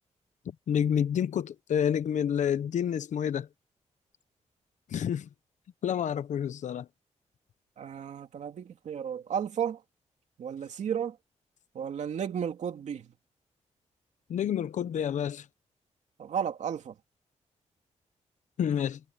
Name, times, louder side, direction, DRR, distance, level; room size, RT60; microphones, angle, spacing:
voice 1, 0.7-3.5 4.9-5.3 5.8-6.9 14.3-15.4 18.6-19.0, left 9 dB, 85° left, 1.0 m, -28 dB
voice 2, 7.8-9.8 10.4-11.2 11.7-13.1 16.2-16.9, right 8 dB, 75° right, 2.6 m, -33 dB
wide cardioid pair, 140°, 12 cm